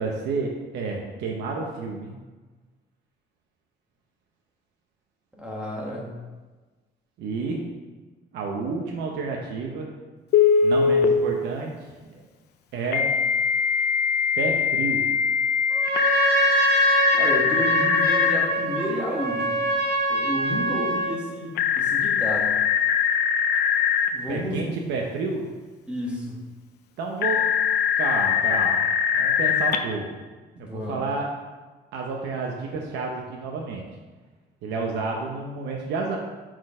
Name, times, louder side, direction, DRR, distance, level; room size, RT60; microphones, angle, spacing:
voice 1, 0.0-2.1 7.2-7.6 8.3-9.9 10.6-12.2 12.7-13.1 14.4-15.0 24.3-25.5 27.0-27.4 28.0-28.9 29.2-30.0 30.6-31.3 31.9-33.8 34.6-36.2, right 4 dB, 80° right, 0 dB, 0.9 m, -30 dB
voice 2, 5.3-6.2 17.1-19.6 20.1-22.5 24.1-24.7 25.9-26.4 30.6-31.0, left 1 dB, 5° right, -3 dB, 1.4 m, -31 dB
Telephone, 10.3-11.1 12.9-18.5 21.6-24.1 27.2-29.8, left 7 dB, 70° left, 0.6 m, -22 dB
Trumpet, 15.7-21.2, right 2 dB, 65° right, 1.3 m, -24 dB
6.3 x 4.6 x 4.9 m, 1.3 s
cardioid pair, 155°, 18 cm